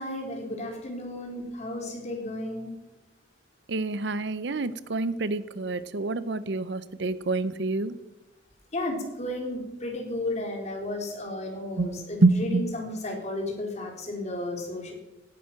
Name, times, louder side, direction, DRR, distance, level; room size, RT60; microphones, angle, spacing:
voice 1, 0.0-2.7 8.7-14.9, left 1 dB, 40° left, 1 dB, 3.8 m, -33 dB
voice 2, 3.7-8.0 11.8-12.7, right 3 dB, 65° right, 15 dB, 0.7 m, -27 dB
17.0 x 11.0 x 5.9 m, 0.97 s
head